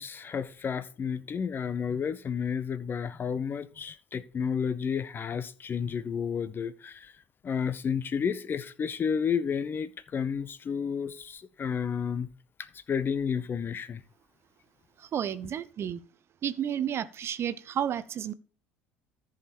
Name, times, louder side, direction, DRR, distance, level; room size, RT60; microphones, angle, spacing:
voice 1, 0.0-7.1 7.4-12.3 12.9-14.0, left 7 dB, 35° left, 0.7 m, -31 dB
voice 2, 15.1-16.0 16.4-18.3, right 9 dB, 40° right, 0.7 m, -31 dB
14.0 x 5.0 x 4.5 m
figure-of-eight pair, 65°, 6 cm